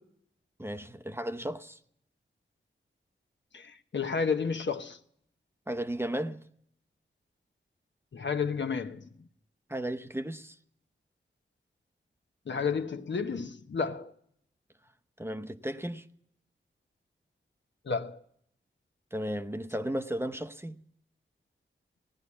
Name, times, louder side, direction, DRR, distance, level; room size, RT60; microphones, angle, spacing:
voice 1, 0.6-1.8 5.7-6.4 9.7-10.6 15.2-16.1 19.1-20.8, right 1 dB, 10° right, 0.8 m, -34 dB
voice 2, 3.5-5.0 8.1-9.3 12.5-14.1 17.8-18.2, left 5 dB, 65° left, 1.0 m, -31 dB
16.5 x 9.8 x 8.4 m
cardioid pair, 50°, 21 cm